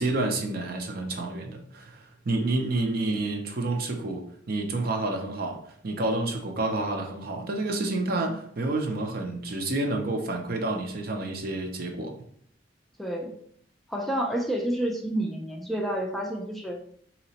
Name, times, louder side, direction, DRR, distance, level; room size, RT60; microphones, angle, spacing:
voice 1, 0.0-12.2, right 2 dB, 55° right, 4 dB, 0.6 m, -29 dB
voice 2, 13.0-13.4 13.9-16.8, right 1 dB, ahead, 0 dB, 0.4 m, -29 dB
4.1 x 2.9 x 2.8 m, 0.64 s
head